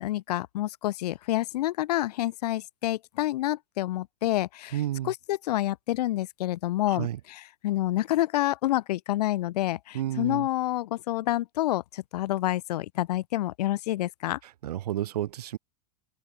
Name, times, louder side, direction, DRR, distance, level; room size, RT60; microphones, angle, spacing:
voice 1, 0.0-4.8 5.0-14.4, left 15 dB, 85° left, 0.5 m, -28 dB
voice 2, 4.7-5.1 6.9-7.2 9.9-10.5 14.6-15.6, right 12 dB, 80° right, 3.2 m, -31 dB
open air
supercardioid pair, 175°, 20 cm